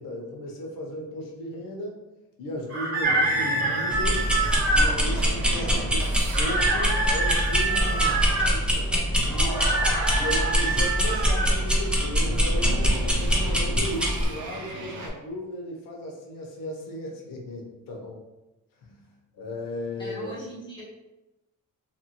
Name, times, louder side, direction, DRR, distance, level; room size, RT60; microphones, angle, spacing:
voice 1, 0.0-2.0 2.4-4.3 4.7-6.0 6.4-8.2 8.5-9.7 10.2-18.2 18.8-19.0 19.3-20.3, left 1 dB, 80° left, 0 dB, 0.8 m, -35 dB
sound 1, 2.7-4.9 6.3-8.5 9.5-11.5, right 2 dB, 45° right, 1.3 m, -26 dB
sound 2, 3.0-15.1, right 2 dB, 60° right, 0.6 m, -35 dB
sound 3, 3.9-14.2, equal, 5° right, 0.3 m, -24 dB
voice 2, 5.4-5.9 20.0-20.8, equal, 15° left, -8 dB, 1.2 m, -40 dB
2.9 x 2.6 x 2.9 m, 1.0 s
cardioid pair, 155°, 33 cm